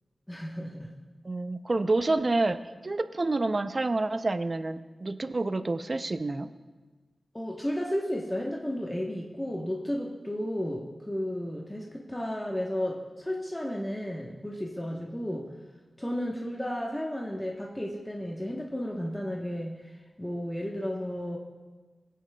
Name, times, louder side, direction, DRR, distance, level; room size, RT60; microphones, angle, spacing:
voice 1, 0.3-0.9 7.3-15.5 16.0-21.4, equal, 15° left, -1 dB, 1.0 m, -33 dB
voice 2, 1.2-6.5, right 2 dB, 50° right, 11 dB, 0.5 m, -28 dB
17.5 x 9.3 x 2.3 m, 1.3 s
cardioid pair, 50°, 0 cm